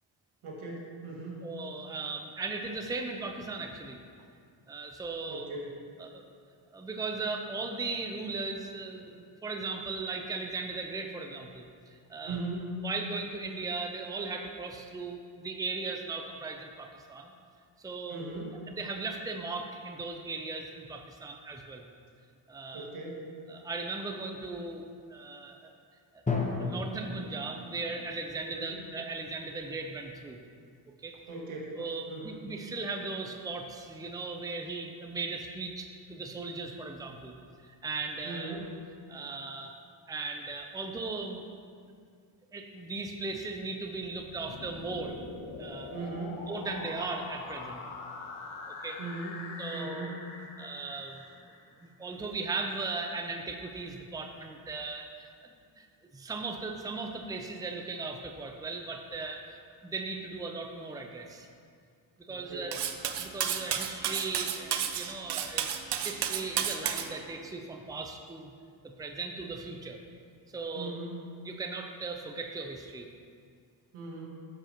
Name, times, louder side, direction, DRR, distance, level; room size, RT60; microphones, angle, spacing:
voice 1, 0.4-1.5 5.3-5.8 12.2-12.7 18.1-18.6 22.7-23.3 28.5-28.9 31.3-31.8 32.1-32.4 38.2-38.7 45.9-46.5 49.0-49.5 49.7-50.3 62.3-62.7 70.7-71.3 73.9-74.2, right 3 dB, 85° right, -3 dB, 2.1 m, -39 dB
voice 2, 1.4-4.0 4.7-5.5 6.0-6.2 6.7-11.6 11.9-12.4 12.8-17.3 17.8-18.2 18.7-21.8 22.5-22.9 23.5-25.7 26.1-26.2 26.6-30.4 31.0-31.2 31.8-37.3 37.6-38.6 39.1-39.7 40.1-41.4 41.8-41.9 42.5-45.1 45.6-45.9 46.5-47.8 48.7-49.0 49.6-50.2 50.6-51.2 51.8-55.9 56.1-61.5 62.3-68.5 68.8-70.0 70.5-71.0 71.4-73.1, right 3 dB, 10° right, 3 dB, 0.6 m, -38 dB
Drum, 26.3-28.2, left 3 dB, 15° left, 1.0 m, -34 dB
sound 1, 44.0-51.9, left 3 dB, 90° left, 1.2 m, -44 dB
Cutlery silverware, 62.7-67.1, right 9 dB, 55° right, 0.7 m, -31 dB
12.0 x 7.2 x 3.0 m, 2.2 s
cardioid pair, 105°, 49 cm